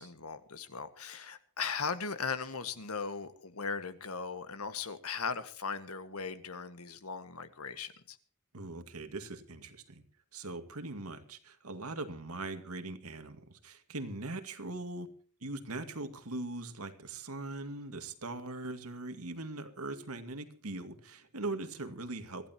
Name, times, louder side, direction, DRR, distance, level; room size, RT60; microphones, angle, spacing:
voice 1, 0.0-8.2, left 5 dB, 80° left, 1.8 m, -38 dB
voice 2, 8.5-10.0 10.3-15.1 15.4-22.5, right 2 dB, 80° right, 2.2 m, -41 dB
24.5 x 15.0 x 2.9 m
head